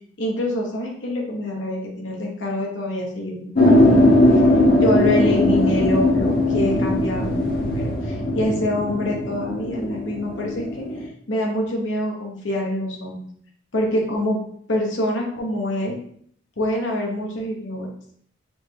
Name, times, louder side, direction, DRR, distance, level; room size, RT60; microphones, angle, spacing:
voice 1, 0.2-3.9 4.8-7.4 7.7-13.2 13.7-14.4 14.7-16.0 16.6-17.9, left 1 dB, 70° left, 0 dB, 1.1 m, -25 dB
sound 1, 3.6-11.0, left 1 dB, 50° left, 0.7 m, -19 dB
5.6 x 2.2 x 3.3 m, 0.64 s
head